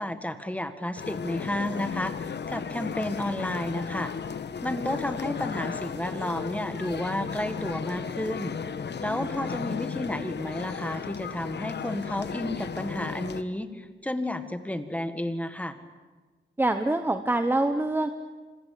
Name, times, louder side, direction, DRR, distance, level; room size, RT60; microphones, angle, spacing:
voice 1, 0.0-4.1 4.6-8.6 9.0-15.8, left 1 dB, 5° left, 9 dB, 1.8 m, -31 dB
sound 1, 1.0-13.4, left 6 dB, 60° left, 1.3 m, -35 dB
voice 2, 16.6-18.1, right 2 dB, 10° right, 8 dB, 1.0 m, -25 dB
26.0 x 25.5 x 8.6 m, 1.4 s
wide cardioid pair, 160°, 20 cm